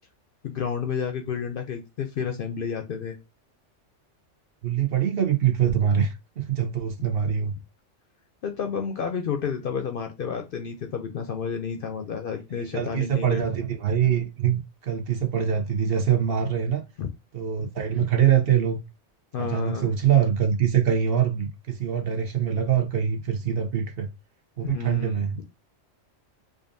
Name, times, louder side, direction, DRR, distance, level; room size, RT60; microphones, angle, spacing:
voice 1, 0.4-3.2 8.4-13.4 17.0-17.1 19.3-19.9 24.6-25.3, left 6 dB, 60° left, 0.6 m, -30 dB
voice 2, 4.6-7.5 12.6-16.8 17.3-18.8 19.4-24.1 24.6-25.4, right 8 dB, 55° right, 0.9 m, -24 dB
5.0 x 2.5 x 2.6 m
omnidirectional pair, 1.3 m